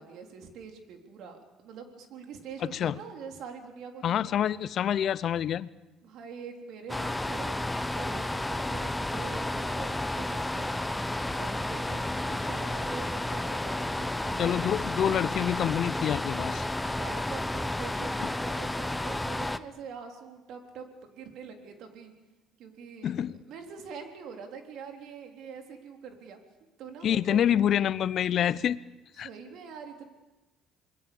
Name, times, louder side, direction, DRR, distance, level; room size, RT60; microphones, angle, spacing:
voice 1, 0.0-4.4 6.0-7.6 8.0-10.8 11.3-14.8 16.8-22.1 22.6-23.1 23.5-26.4 26.8-27.4 29.2-30.1, right 6 dB, 65° right, 4 dB, 3.8 m, -44 dB
voice 2, 4.0-5.7 14.4-16.6 23.0-23.4 27.0-28.8 29.2-29.3, left 10 dB, 55° left, 18 dB, 0.8 m, -27 dB
sound 1, 6.9-19.6, left 1 dB, 10° left, 1.0 m, -32 dB
27.5 x 21.0 x 7.1 m, 1.1 s
supercardioid pair, 70°, 0 cm